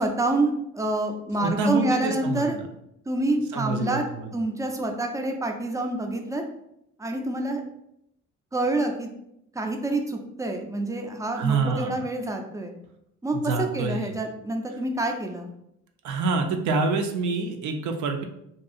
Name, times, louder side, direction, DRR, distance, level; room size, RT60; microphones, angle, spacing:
voice 1, 0.0-2.6 3.1-4.1 4.3-6.4 7.0-7.6 8.5-9.1 9.6-12.7 13.2-15.5, right 2 dB, 10° right, 3 dB, 0.4 m, -27 dB
voice 2, 1.4-2.7 3.5-4.3 11.4-12.0 13.3-14.1 16.0-18.2, right 3 dB, 75° right, 5 dB, 0.5 m, -27 dB
2.7 x 2.3 x 2.5 m, 0.78 s
cardioid pair, 90°, 30 cm